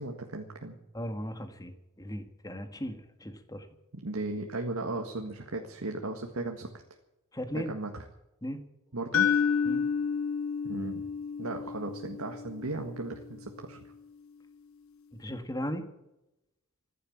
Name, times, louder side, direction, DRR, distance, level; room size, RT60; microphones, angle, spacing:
voice 1, 0.0-0.8 3.9-6.7 7.5-8.1 8.9-9.3 10.6-11.0 11.4-13.8, right 2 dB, 85° right, 3 dB, 1.7 m, -36 dB
voice 2, 0.9-1.7 2.0-3.7 7.3-7.7 8.4-8.6 9.7-9.8 15.2-15.8, equal, 15° left, 8 dB, 1.7 m, -36 dB
sound 1, 9.1-13.2, left 7 dB, 70° left, 1.1 m, -30 dB
15.0 x 11.0 x 8.7 m, 0.90 s
head